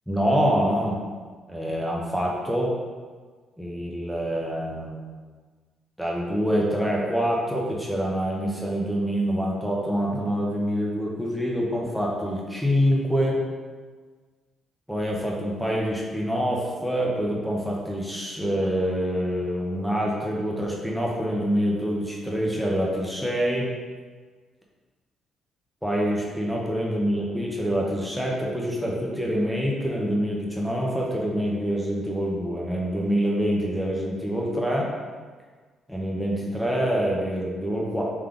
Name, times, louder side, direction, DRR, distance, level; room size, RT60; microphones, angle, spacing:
voice 1, 0.1-1.0 1.5-2.7 3.6-5.0 6.0-13.4 14.9-23.7 25.8-34.9 35.9-38.0, equal, ahead, -3 dB, 0.9 m, -26 dB
3.6 x 3.2 x 3.8 m, 1.5 s
cardioid pair, 90°, 0 cm